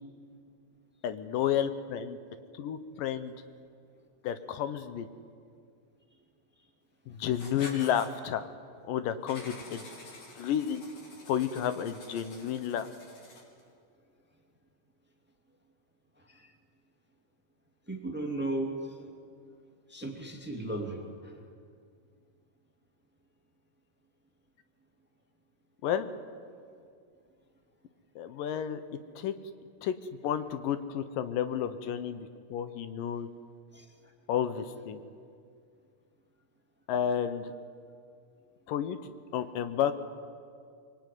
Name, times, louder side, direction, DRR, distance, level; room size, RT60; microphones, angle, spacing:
voice 1, 1.0-2.2 2.5-3.3 4.2-5.1 7.1-8.5 8.8-9.8 10.4-10.8 11.3-12.9 25.8-26.1 28.2-28.8 29.2-29.3 29.8-30.0 30.2-33.3 34.3-35.0 36.9-37.5 38.7-39.9, left 9 dB, 80° left, 11 dB, 2.6 m, -31 dB
Writing, 7.3-8.1 9.3-13.6, left 2 dB, 55° left, 5.0 m, -48 dB
voice 2, 17.9-18.7 19.0-19.1 19.9-21.3 33.7-33.8, right 2 dB, 5° right, 2 dB, 2.1 m, -35 dB
24.0 x 23.5 x 9.4 m, 2.3 s
omnidirectional pair, 3.9 m